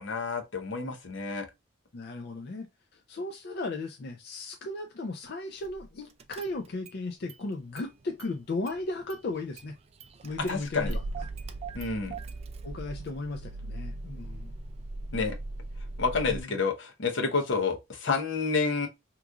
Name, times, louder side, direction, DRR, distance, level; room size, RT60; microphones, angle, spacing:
voice 1, 0.0-1.5 10.5-10.9 11.7-12.1 15.1-15.4 16.0-18.9, left 4 dB, 80° left, 0.8 m, -29 dB
voice 2, 1.9-9.7 10.2-11.0 12.6-14.5 16.2-16.5, left 2 dB, 55° left, 0.4 m, -36 dB
Car / Engine starting, 5.6-5.9 6.2-7.0 7.3-8.3 8.7-16.4, right 2 dB, 30° right, 0.3 m, -39 dB
3.0 x 2.4 x 3.4 m
head